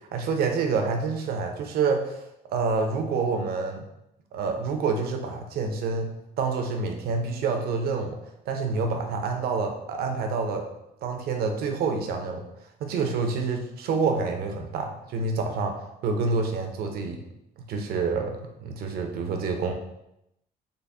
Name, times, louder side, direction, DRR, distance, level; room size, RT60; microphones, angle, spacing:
voice 1, 0.1-2.2 2.5-3.8 4.3-6.1 6.4-8.2 8.5-10.6 11.0-12.4 12.8-15.7 16.0-17.2 17.7-19.7, right 4 dB, 70° right, 4 dB, 0.6 m, -27 dB
3.9 x 2.0 x 3.4 m, 0.83 s
cardioid pair, 110°, 17 cm